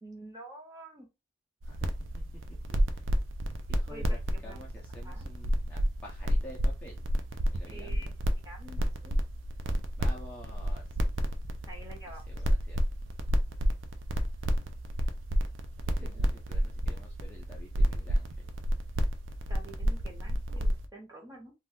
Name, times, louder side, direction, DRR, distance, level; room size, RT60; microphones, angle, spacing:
voice 1, 0.0-1.1 3.9-4.0 4.3-4.7 5.0-5.3 7.7-9.2 11.7-12.2 16.0-16.2 19.5-21.5, right 1 dB, 15° right, 0 dB, 0.9 m, -48 dB
sound 1, 1.6-20.9, equal, 75° right, 0.5 m, -31 dB
voice 2, 2.7-3.1 3.7-7.1 7.5-8.1 10.0-10.8 12.3-12.8 15.9-18.4, equal, 10° left, -3 dB, 0.5 m, -50 dB
2.5 x 2.3 x 3.5 m, 0.25 s
head